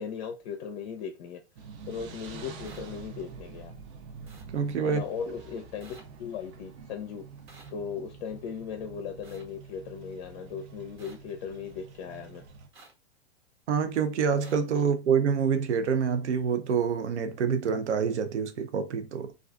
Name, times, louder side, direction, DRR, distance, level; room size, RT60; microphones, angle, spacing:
voice 1, 0.0-1.4 1.9-3.7 4.8-7.3 7.7-12.4, left 7 dB, 45° left, 0.5 m, -37 dB
sound 1, 1.5-12.7, right 5 dB, 30° right, 0.4 m, -47 dB
sound 2, 2.6-2.8 4.3-4.4 5.8-6.0 7.5-7.7 9.2-9.4 11.0-11.2 12.7-12.9 14.4-14.6, right 3 dB, 60° right, 1.1 m, -52 dB
voice 2, 4.5-5.0 13.7-19.3, right 6 dB, 85° right, 0.5 m, -26 dB
2.4 x 2.3 x 2.2 m
hypercardioid pair, 105°, 34 cm